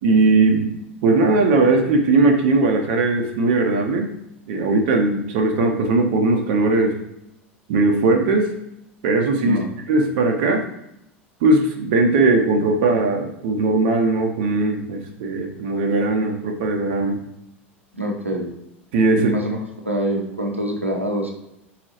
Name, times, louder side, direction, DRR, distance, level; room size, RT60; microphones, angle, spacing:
voice 1, 0.0-4.1 4.5-7.0 7.7-8.5 9.0-9.6 9.9-10.6 11.4-17.2 18.9-19.3, right 3 dB, 55° right, 2 dB, 0.7 m, -19 dB
voice 2, 9.4-9.7 17.9-18.5 19.1-19.6 19.8-21.3, right 1 dB, 90° right, 0 dB, 0.8 m, -25 dB
4.4 x 4.0 x 2.9 m, 0.82 s
figure-of-eight pair, 80°, 7 cm